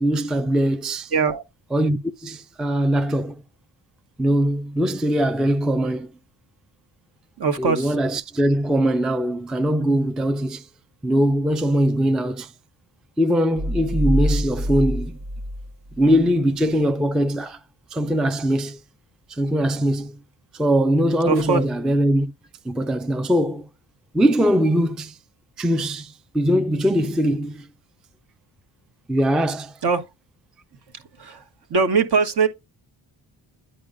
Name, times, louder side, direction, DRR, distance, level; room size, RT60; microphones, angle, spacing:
voice 1, 0.0-1.1 1.7-3.4 4.2-6.1 7.6-10.7 11.0-12.5 13.2-15.2 16.0-17.6 17.9-18.8 19.3-20.2 20.5-22.3 22.6-23.7 24.1-25.2 25.6-27.7 29.1-29.8, equal, ahead, 0.3 m, -21 dB
voice 2, 1.1-1.4 7.4-8.0 21.3-21.6 29.8-30.1 30.9-31.4 31.7-32.5, right 5 dB, 55° right, 1.3 m, -21 dB
sound 1, 13.6-16.3, equal, 35° right, 0.8 m, -25 dB
8.6 x 5.3 x 2.6 m
supercardioid pair, 45°, 48 cm